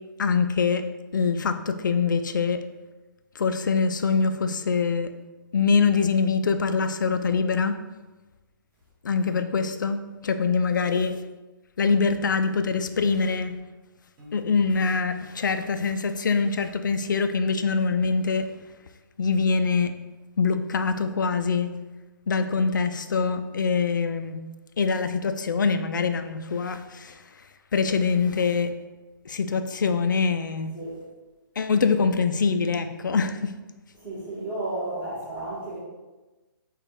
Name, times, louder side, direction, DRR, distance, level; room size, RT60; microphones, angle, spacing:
voice 1, 0.2-0.8 1.1-2.6 3.4-5.1 5.5-7.7 9.0-11.1 11.8-13.5 14.3-18.5 19.2-19.9 20.4-21.7 22.3-24.4 24.8-27.1 27.7-28.7 29.3-30.7 31.6-33.5, left 5 dB, 60° left, 9 dB, 0.4 m, -24 dB
Piano, 14.2-15.2, left 1 dB, 30° right, 1.2 m, -48 dB
voice 2, 30.7-31.0 33.9-35.8, right 2 dB, 10° right, -8 dB, 1.3 m, -33 dB
4.0 x 2.4 x 4.6 m, 1.2 s
figure-of-eight pair, 130°, 12 cm